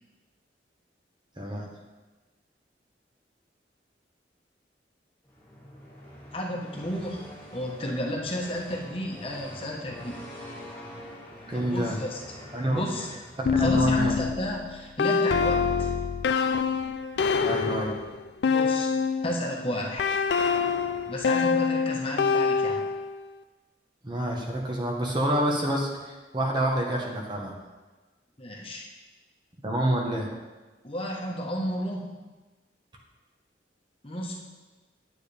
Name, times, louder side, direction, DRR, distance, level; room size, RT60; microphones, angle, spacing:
voice 1, 1.4-1.7 11.5-12.0 12.5-12.8 13.4-14.2 17.4-18.0 24.0-27.6 29.6-30.3, right 1 dB, 25° right, -1 dB, 1.1 m, -28 dB
sound 1, 5.2-13.9, left 1 dB, 10° left, 1.7 m, -45 dB
voice 2, 6.3-10.2 11.5-12.2 12.7-13.1 13.6-15.9 18.4-19.0 19.2-20.1 21.1-22.8 28.4-28.9 30.8-32.1 34.0-34.3, left 1 dB, 30° left, -1 dB, 1.2 m, -32 dB
sound 2, 13.5-19.4 20.0-23.2, left 5 dB, 70° left, 0.4 m, -25 dB
9.2 x 8.7 x 3.4 m, 1.2 s
head